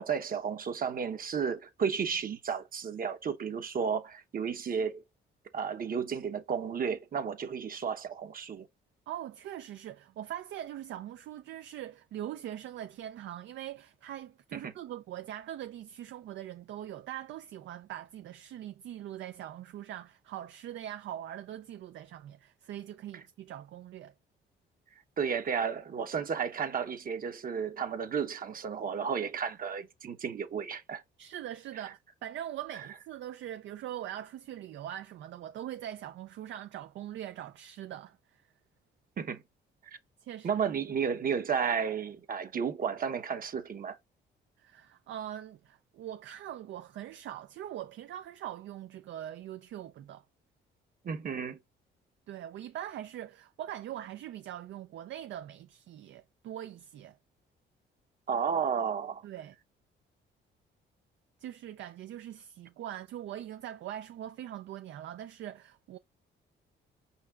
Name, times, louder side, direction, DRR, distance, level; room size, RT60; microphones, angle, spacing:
voice 1, 0.0-5.0 5.5-8.7 14.5-14.7 25.2-31.0 39.2-39.4 40.4-44.0 51.0-51.6 58.3-59.2, right 6 dB, 45° right, 0.9 m, -32 dB
voice 2, 9.1-24.1 31.2-38.4 40.2-40.5 44.6-50.2 52.3-57.2 59.2-59.5 61.4-66.0, right 11 dB, 70° right, 0.5 m, -42 dB
5.5 x 4.1 x 2.4 m
cardioid pair, 90°, 20 cm